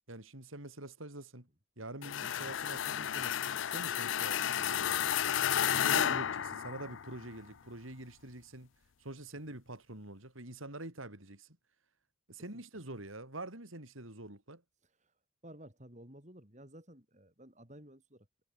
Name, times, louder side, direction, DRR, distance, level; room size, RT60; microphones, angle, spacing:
voice 1, 0.1-1.5 1.8-3.4 3.7-5.4 5.7-8.7 9.0-11.6 12.3-14.6, right 1 dB, 80° right, 5.4 m, -46 dB
sound 1, 2.0-7.2, left 9 dB, 70° left, 0.5 m, -32 dB
voice 2, 15.4-18.3, right 1 dB, 35° right, 5.7 m, -54 dB
head